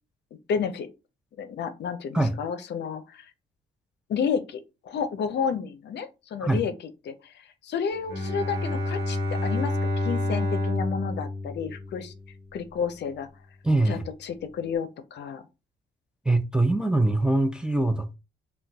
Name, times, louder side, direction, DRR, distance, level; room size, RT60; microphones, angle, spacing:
voice 1, 0.5-0.9 1.4-3.3 4.1-6.7 7.1-7.3 7.6-12.1 12.5-13.3 13.9-15.4, left 6 dB, 60° left, 0.5 m, -31 dB
Bowed string instrument, 8.1-12.4, left 2 dB, 60° right, 1.1 m, -29 dB
voice 2, 13.6-14.1 16.3-18.1, right 2 dB, 5° right, 0.3 m, -23 dB
3.8 x 2.2 x 2.2 m
cardioid pair, 90°, 20 cm